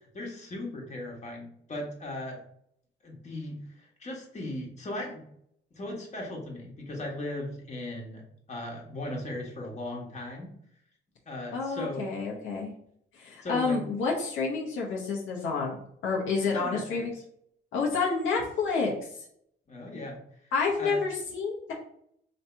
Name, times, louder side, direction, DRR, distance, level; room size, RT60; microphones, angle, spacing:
voice 1, 0.1-2.4 3.0-5.2 5.7-8.2 8.5-10.5 11.2-12.1 13.4-13.8 16.4-17.0 19.7-20.2 20.8-21.0, left 1 dB, 35° left, -1 dB, 1.4 m, -37 dB
voice 2, 11.5-12.7 13.1-17.1 17.7-19.1 20.5-21.7, left 4 dB, 80° left, -3 dB, 0.9 m, -29 dB
3.2 x 2.9 x 4.4 m, 0.69 s
cardioid pair, 90°, 20 cm